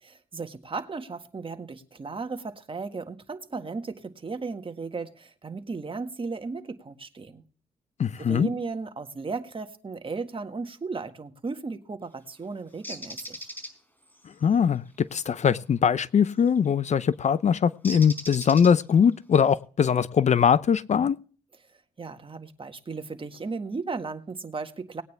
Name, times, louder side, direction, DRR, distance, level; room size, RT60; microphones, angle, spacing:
voice 1, 0.0-7.4 8.2-13.5 22.0-25.0, right 4 dB, 35° right, 1.7 m, -35 dB
voice 2, 8.0-8.5 14.4-21.2, left 7 dB, 50° left, 0.6 m, -22 dB
Bird, 12.8-13.7 16.3-16.6 17.8-19.0, equal, 10° left, 4.4 m, -38 dB
19.5 x 9.4 x 3.4 m
supercardioid pair, 55°, 15 cm